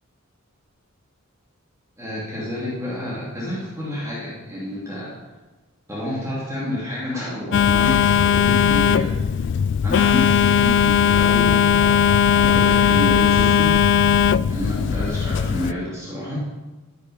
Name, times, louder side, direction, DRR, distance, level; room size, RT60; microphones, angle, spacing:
voice 1, 2.0-5.2 5.9-9.5 9.8-12.0 12.3-13.8 14.5-16.4, left 1 dB, 15° right, -8 dB, 2.6 m, -29 dB
Telephone, 7.5-15.7, left 8 dB, 55° left, 0.3 m, -18 dB
13.0 x 6.5 x 5.5 m, 1.2 s
head